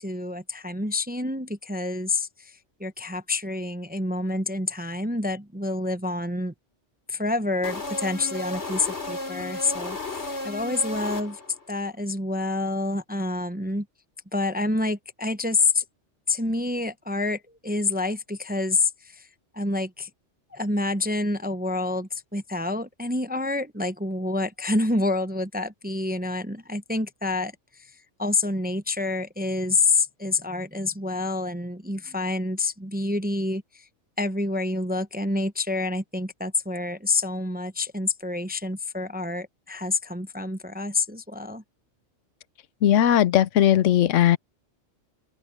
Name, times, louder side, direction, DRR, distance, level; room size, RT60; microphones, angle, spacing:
voice 1, 0.0-6.5 7.1-11.4 11.7-13.9 14.3-15.8 16.3-19.3 19.5-20.1 20.5-27.9 28.2-33.9 34.2-41.6, left 3 dB, 10° right, 0.5 m, -28 dB
sound 1, 7.6-11.7, left 2 dB, 65° left, 3.8 m, -34 dB
voice 2, 42.8-44.4, left 11 dB, 90° left, 1.0 m, -18 dB
open air
omnidirectional pair, 1.2 m